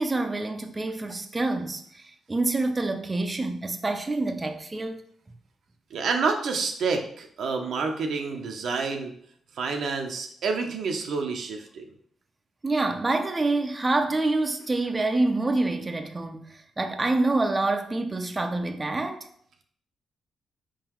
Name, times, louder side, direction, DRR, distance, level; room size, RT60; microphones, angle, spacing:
voice 1, 0.0-5.0 12.6-19.3, right 2 dB, 30° right, 0.5 m, -27 dB
voice 2, 5.9-9.1 9.5-11.9, right 4 dB, 70° right, 0.6 m, -28 dB
4.5 x 3.8 x 3.0 m
supercardioid pair, 55°, 0 cm